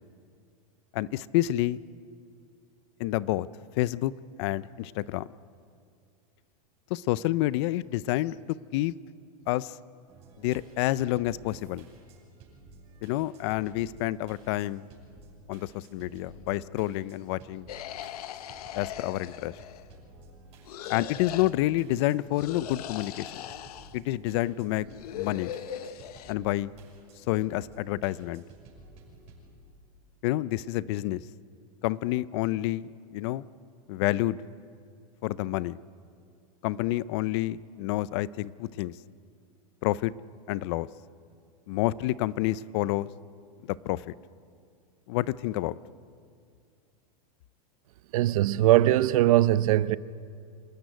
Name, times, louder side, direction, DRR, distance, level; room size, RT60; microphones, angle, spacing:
voice 1, 0.9-1.8 3.0-3.5 3.8-4.1 4.4-5.3 6.9-8.4 8.7-8.9 9.5-9.8 10.4-11.9 13.0-14.8 15.5-17.7 18.7-19.5 20.9-23.5 23.9-24.9 25.1-25.5 26.3-26.7 27.3-28.4 30.2-31.2 31.8-33.4 33.9-34.4 35.2-35.8 36.6-38.9 39.8-40.1 40.5-40.9 41.7-43.1 43.8-44.1 45.1-45.8, left 16 dB, 45° left, 0.5 m, -28 dB
sound 1, 10.1-29.5, right 2 dB, 35° right, 6.2 m, -53 dB
sound 2, 17.7-20.0 20.6-21.5 22.3-24.0 24.8-26.3, left 11 dB, 85° left, 1.0 m, -39 dB
voice 2, 48.1-50.0, right 14 dB, 65° right, 0.7 m, -21 dB
26.5 x 14.0 x 9.5 m
supercardioid pair, 155°, 19 cm